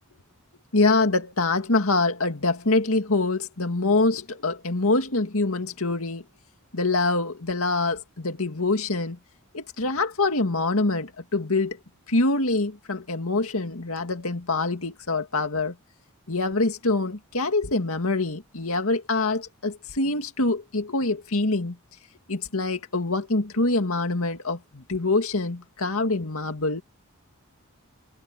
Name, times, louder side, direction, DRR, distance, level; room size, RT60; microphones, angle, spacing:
voice 1, 0.7-6.2 6.7-9.2 9.5-11.8 12.1-15.8 16.3-21.8 22.3-26.8, left 2 dB, 65° left, 2.2 m, -25 dB
head